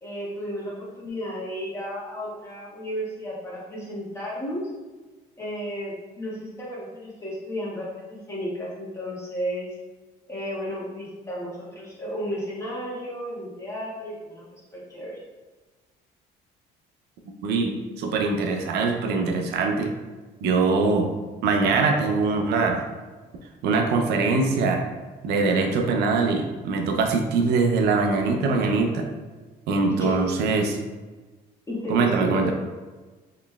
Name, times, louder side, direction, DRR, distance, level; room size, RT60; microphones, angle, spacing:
voice 1, 0.0-4.6 5.4-9.7 10.3-14.4 14.7-15.2 29.9-30.2 31.7-32.5, equal, 15° left, -7 dB, 1.3 m, -33 dB
voice 2, 17.4-19.9 20.4-21.1 21.4-22.8 23.6-24.9 25.2-29.1 29.7-30.8 31.9-32.5, right 4 dB, 80° right, 3 dB, 0.5 m, -22 dB
4.0 x 3.1 x 2.2 m, 1.3 s
cardioid pair, 110°, 17 cm